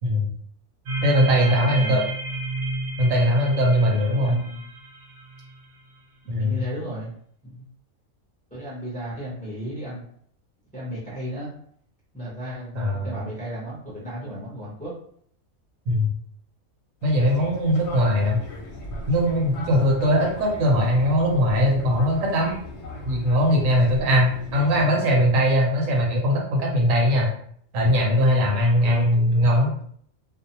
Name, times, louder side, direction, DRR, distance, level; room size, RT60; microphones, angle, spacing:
voice 1, 0.0-0.3 1.0-2.0 3.0-4.4 6.3-6.6 12.7-13.1 15.9-16.1 17.0-18.4 19.1-22.5 23.0-27.3 27.7-29.7, equal, 75° right, -1 dB, 1.1 m, -20 dB
sound 1, 0.9-5.7, right 2 dB, 55° right, 0.7 m, -32 dB
voice 2, 1.2-2.1 3.7-4.6 6.2-7.1 7.4-7.6 8.5-10.0 10.7-11.5 12.1-14.9 18.0-18.3 24.5-25.0 28.8-29.5, equal, 10° left, -8 dB, 0.5 m, -35 dB
Fixed-wing aircraft airplane, 17.0-24.9, left 1 dB, 60° left, 0.9 m, -39 dB
2.6 x 2.0 x 2.8 m, 0.63 s
omnidirectional pair, 1.4 m